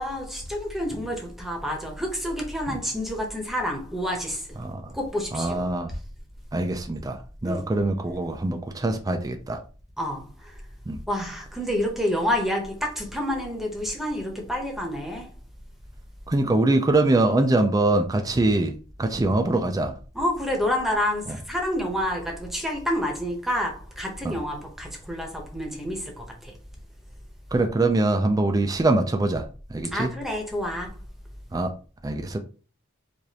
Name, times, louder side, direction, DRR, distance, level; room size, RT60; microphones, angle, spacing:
voice 1, 0.0-4.4 4.9-5.6 7.4-7.6 10.0-10.2 11.1-15.3 20.1-26.0 29.9-30.9, left 1 dB, ahead, 0.9 m, -28 dB
voice 2, 4.6-4.9 5.3-5.9 6.5-9.6 10.9-11.0 16.3-18.7 19.0-19.9 21.3-21.4 24.2-24.4 27.5-29.4 29.7-30.1 31.5-31.7 32.0-32.4, right 2 dB, 20° right, 0.4 m, -23 dB
4.8 x 2.6 x 2.8 m
head